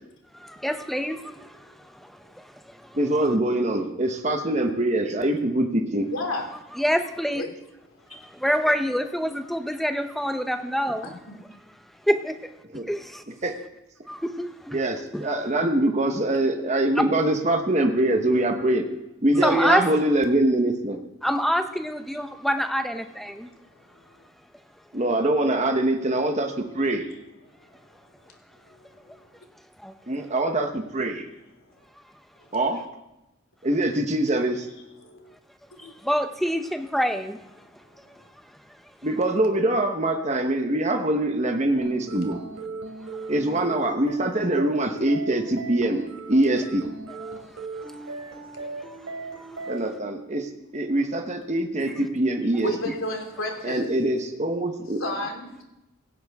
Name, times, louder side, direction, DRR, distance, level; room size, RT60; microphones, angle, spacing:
voice 1, 0.4-1.6 6.8-7.4 8.1-11.1 12.1-12.4 12.9-13.2 14.1-14.8 15.1-15.2 19.4-19.8 21.2-23.5 29.8-29.9 35.8-37.4 47.3-47.4 48.6-48.7, equal, ahead, 7 dB, 0.7 m, -26 dB
voice 2, 2.9-6.1 12.6-12.9 13.3-13.6 14.7-18.8 19.2-21.0 24.9-27.1 30.1-31.3 32.5-32.8 33.6-34.7 39.0-42.4 43.3-46.0 46.3-46.8 49.7-52.7 53.6-55.0, right 1 dB, 30° right, 4 dB, 1.1 m, -24 dB
voice 3, 6.1-6.4 7.3-7.5 24.2-24.3 28.7-28.8 29.0-29.2 35.0-35.3 35.8-35.9 48.0-48.1 52.6-53.8 55.0-55.6, left 2 dB, 75° left, 2 dB, 2.7 m, -31 dB
sound 1, 41.8-49.8, right 3 dB, 80° right, 3.1 m, -38 dB
16.5 x 16.5 x 3.6 m, 0.93 s
head